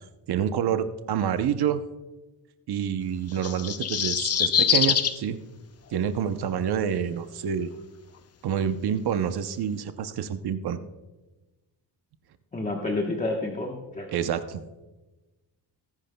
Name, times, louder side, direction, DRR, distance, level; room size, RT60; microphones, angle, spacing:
voice 1, 0.3-1.8 2.7-5.4 5.9-7.7 8.4-10.8 14.1-14.6, right 8 dB, 70° right, 10 dB, 0.7 m, -27 dB
sound 1, 3.3-5.2 6.6-6.7, left 8 dB, 40° left, 0.5 m, -24 dB
voice 2, 12.5-14.1, left 2 dB, 20° left, 1 dB, 1.1 m, -29 dB
20.0 x 10.5 x 2.2 m, 1.1 s
wide cardioid pair, 150°, 40 cm